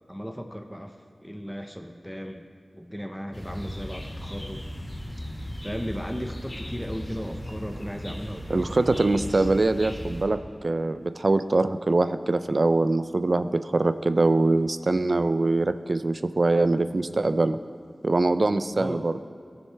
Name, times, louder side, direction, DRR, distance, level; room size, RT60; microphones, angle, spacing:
voice 1, 0.1-2.5 2.7-4.7 5.4-8.7 9.3-9.5 18.8-19.1, equal, ahead, 4 dB, 0.6 m, -36 dB
sound 1, 3.3-10.2, equal, 35° left, 2.3 m, -37 dB
voice 2, 8.5-17.6 18.0-19.1, right 2 dB, 55° right, 11 dB, 0.4 m, -23 dB
17.5 x 6.5 x 3.4 m, 2.2 s
wide cardioid pair, 70°, 0 cm